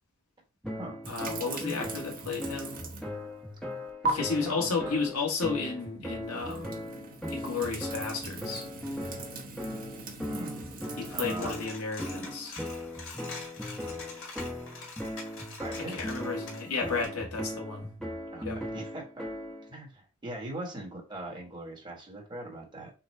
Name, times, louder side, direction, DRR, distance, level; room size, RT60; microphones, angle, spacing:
sound 1, 0.6-19.7, equal, 5° left, 0.9 m, -39 dB
sound 2, 1.0-3.2 3.5-4.1 6.2-11.4, right 3 dB, 40° right, 1.0 m, -39 dB
voice 1, 1.1-2.8 4.1-6.8 7.3-8.6 11.0-12.6 15.8-17.9 18.4-18.6, left 4 dB, 80° left, 1.5 m, -33 dB
voice 2, 4.1-5.0 10.3-10.7 11.1-11.6 15.6-16.0 18.3-19.3 19.7-22.9, right 1 dB, 20° right, 1.5 m, -41 dB
Coin (dropping), 10.8-17.1, left 3 dB, 65° left, 1.8 m, -45 dB
6.7 x 2.3 x 3.2 m
head